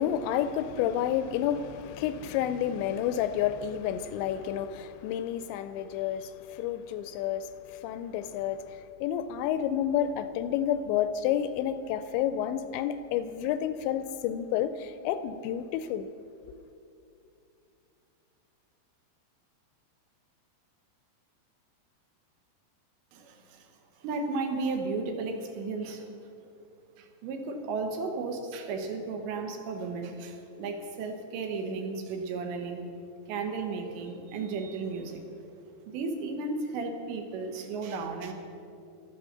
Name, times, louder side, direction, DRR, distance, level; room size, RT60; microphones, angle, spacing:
voice 1, 0.0-16.1, left 10 dB, 85° left, 2.7 m, -30 dB
voice 2, 23.1-23.7 24.0-26.1 27.0-32.9 33.3-35.2 35.9-38.3, right 4 dB, 75° right, 3.4 m, -34 dB
14.5 x 12.5 x 6.7 m
omnidirectional pair, 5.4 m